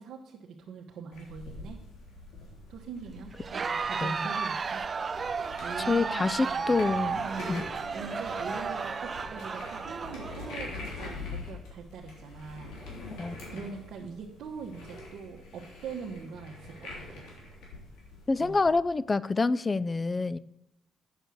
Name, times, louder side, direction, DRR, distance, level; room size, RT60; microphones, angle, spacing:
voice 1, 0.0-1.8 2.7-4.8 5.6-6.8 7.2-7.6 7.9-12.8 13.1-17.2 18.4-18.6, right 5 dB, 70° right, -2 dB, 1.3 m, -42 dB
sound 1, 1.1-18.7, left 2 dB, 90° left, 3.3 m, -44 dB
Crowd, 3.4-10.9, right 5 dB, 40° right, 0.5 m, -33 dB
voice 2, 5.9-7.2 7.5-7.6 13.2-13.4 18.3-20.4, left 3 dB, 25° left, 18 dB, 0.4 m, -27 dB
8.9 x 7.0 x 6.3 m, 0.82 s
cardioid pair, 90°, 0 cm